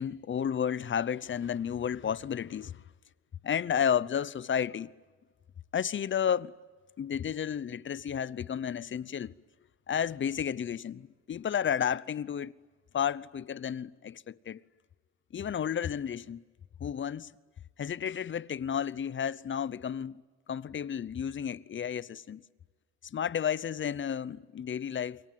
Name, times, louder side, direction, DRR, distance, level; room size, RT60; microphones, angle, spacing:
voice 1, 0.0-2.8 3.4-4.9 5.7-6.5 7.0-9.3 9.9-12.5 12.9-14.6 15.3-16.4 16.8-17.3 17.8-20.2 20.5-22.4 23.1-25.2, left 8 dB, 40° left, 0.8 m, -32 dB
28.0 x 23.0 x 9.4 m
cardioid pair, 90°, 30 cm